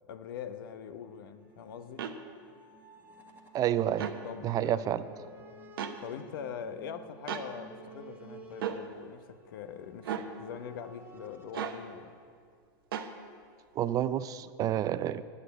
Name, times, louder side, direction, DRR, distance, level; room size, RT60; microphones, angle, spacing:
voice 1, 0.1-2.1 4.2-5.4 6.0-12.2, left 8 dB, 75° left, 10 dB, 0.8 m, -43 dB
sound 1, 0.9-11.5, right 3 dB, 15° right, 1.4 m, -54 dB
sound 2, 2.0-2.2 3.9-4.2 5.8-6.0 7.3-7.5 8.6-8.8 10.0-10.3 11.5-11.8 12.9-13.1, right 8 dB, 85° right, 0.9 m, -35 dB
voice 2, 3.5-4.1 4.4-5.0 13.7-15.3, right 11 dB, 30° right, 15 dB, 0.4 m, -29 dB
11.0 x 6.5 x 8.0 m, 2.1 s
supercardioid pair, 125°, 12 cm